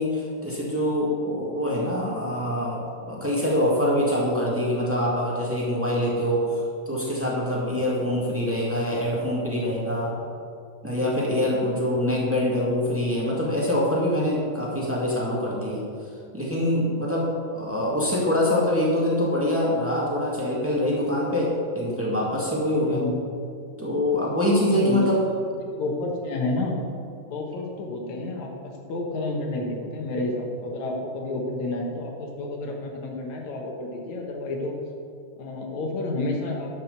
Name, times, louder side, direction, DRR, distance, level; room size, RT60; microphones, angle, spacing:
voice 1, 0.0-10.2 10.8-15.8 16.3-23.0 23.8-25.2, left 1 dB, 10° right, -5 dB, 0.7 m, -24 dB
voice 2, 22.8-23.2 24.7-25.1 25.6-26.8 27.3-34.7 35.4-36.7, left 2 dB, 65° left, 1 dB, 2.3 m, -30 dB
11.5 x 6.3 x 6.7 m, 2.4 s
omnidirectional pair, 4.1 m